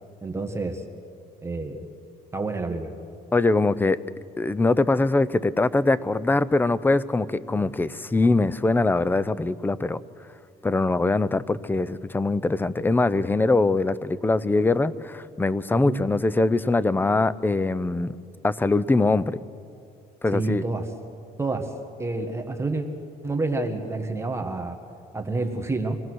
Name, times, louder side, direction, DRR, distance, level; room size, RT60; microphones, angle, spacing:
voice 1, 0.2-0.8 1.4-1.8 2.3-2.9 15.7-16.1 20.3-20.9 21.4-21.7 22.0-22.9 23.2-24.8 25.1-26.0, right 3 dB, 15° right, 4 dB, 1.7 m, -28 dB
voice 2, 3.3-4.0 4.4-10.0 10.6-18.2 18.4-19.4 20.2-20.6, left 2 dB, 10° left, 17 dB, 0.6 m, -22 dB
26.5 x 19.0 x 6.3 m, 2.4 s
cardioid pair, 110°, 17 cm